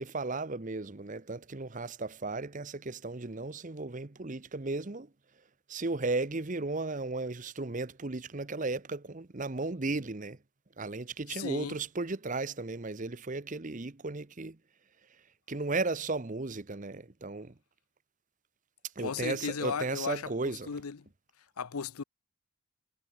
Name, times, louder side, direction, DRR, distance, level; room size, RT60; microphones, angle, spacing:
voice 1, 0.0-5.1 5.7-10.4 10.8-14.6 15.5-17.5 19.0-20.7, right 3 dB, 35° right, 0.8 m, -35 dB
voice 2, 11.3-11.8 19.0-21.1 21.6-22.0, left 6 dB, 85° left, 0.7 m, -36 dB
head